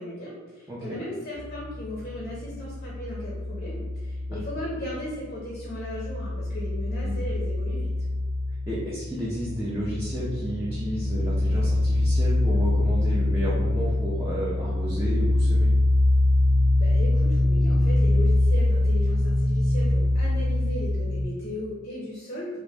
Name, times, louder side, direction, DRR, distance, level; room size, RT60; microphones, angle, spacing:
voice 1, 0.0-7.9 16.8-22.6, left 1 dB, 35° left, -5 dB, 0.6 m, -36 dB
sound 1, 1.3-5.2 5.4-21.2, left 1 dB, 80° right, 0.9 m, -24 dB
voice 2, 8.7-15.7, equal, 15° right, -8 dB, 0.4 m, -32 dB
2.9 x 2.5 x 3.4 m, 1.3 s
head